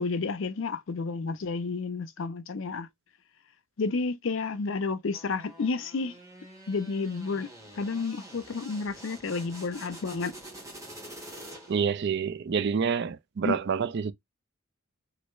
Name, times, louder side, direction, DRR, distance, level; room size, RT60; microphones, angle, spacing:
voice 1, 0.0-2.9 3.8-6.1 6.7-7.5 7.8-10.3 13.4-13.6, left 4 dB, 60° left, 0.5 m, -31 dB
sound 1, 5.1-12.0, right 1 dB, 15° right, 1.4 m, -47 dB
voice 2, 11.7-14.1, right 6 dB, 50° right, 0.4 m, -27 dB
3.3 x 2.5 x 3.0 m
head